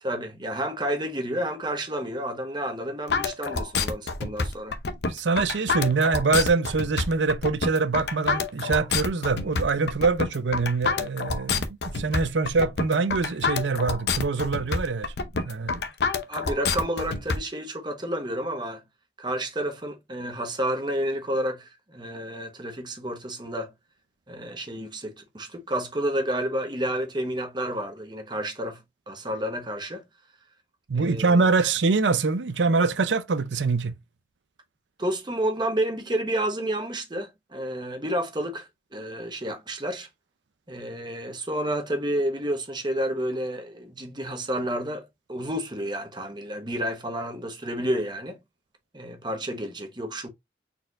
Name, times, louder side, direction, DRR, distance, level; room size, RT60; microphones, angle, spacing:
voice 1, 0.0-4.8 16.3-18.8 19.2-23.7 24.3-30.0 30.9-31.7 35.0-40.1 40.7-48.4 48.9-50.3, right 1 dB, 25° right, 1.0 m, -30 dB
sound 1, 3.1-17.4, left 4 dB, 65° left, 0.7 m, -27 dB
voice 2, 5.1-15.8 30.9-33.9, right 4 dB, 85° right, 0.6 m, -24 dB
4.3 x 4.2 x 2.5 m
head